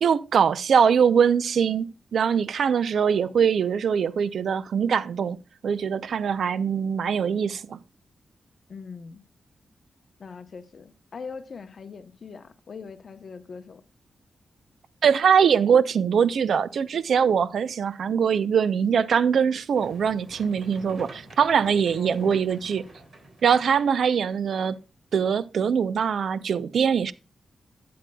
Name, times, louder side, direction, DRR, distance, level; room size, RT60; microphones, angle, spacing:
voice 1, 0.0-5.4 5.6-7.8 15.0-22.9 23.4-24.8 25.1-27.1, right 7 dB, 75° right, 0.5 m, -22 dB
voice 2, 8.7-9.2 10.2-13.8 21.7-22.4, left 5 dB, 50° left, 0.8 m, -41 dB
sound 1, 19.7-24.8, right 1 dB, 50° right, 3.4 m, -47 dB
12.0 x 8.5 x 2.2 m
wide cardioid pair, 135°, 0 cm